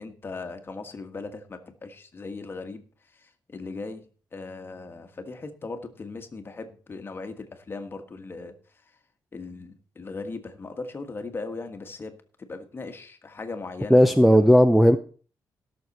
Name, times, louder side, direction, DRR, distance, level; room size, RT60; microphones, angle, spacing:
voice 1, 0.0-2.8 3.1-4.1 4.3-8.5 9.3-14.5, left 3 dB, 30° left, 6 dB, 1.5 m, -38 dB
voice 2, 13.9-15.0, equal, ahead, 6 dB, 0.5 m, -15 dB
17.5 x 6.6 x 4.2 m, 0.39 s
cardioid pair, 135°, 7 cm